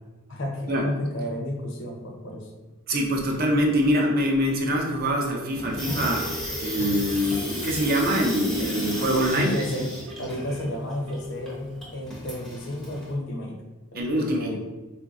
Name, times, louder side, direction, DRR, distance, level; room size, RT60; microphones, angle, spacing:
voice 1, 0.3-2.5 9.4-9.9 10.2-13.6 13.9-14.6, left 1 dB, 60° left, 2 dB, 0.6 m, -32 dB
voice 2, 2.9-6.3 6.6-9.5 14.0-14.6, equal, 45° right, 0 dB, 0.5 m, -24 dB
Telephone, 4.1-4.6 5.1-5.6 6.1-6.6 7.1-7.6 8.1-8.6 9.1-9.6 10.1-10.6 11.1-11.6, left 4 dB, 85° right, 0.8 m, -43 dB
Water tap faucet / Sink (filling or washing), 5.5-13.1, equal, ahead, 0.5 m, -33 dB
3.8 x 2.5 x 2.4 m, 1.2 s
head